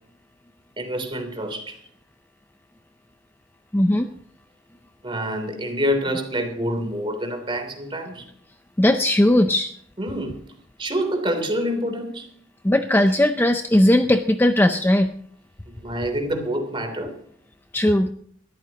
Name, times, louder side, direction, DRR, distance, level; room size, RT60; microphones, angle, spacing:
voice 1, 0.8-1.8 5.0-8.3 10.0-10.4 10.8-12.3 15.7-17.1, equal, 25° right, 5 dB, 3.2 m, -27 dB
voice 2, 3.7-4.1 8.8-9.7 12.6-15.1 17.7-18.1, left 1 dB, 10° left, 7 dB, 0.5 m, -18 dB
21.5 x 14.5 x 2.9 m, 0.62 s
head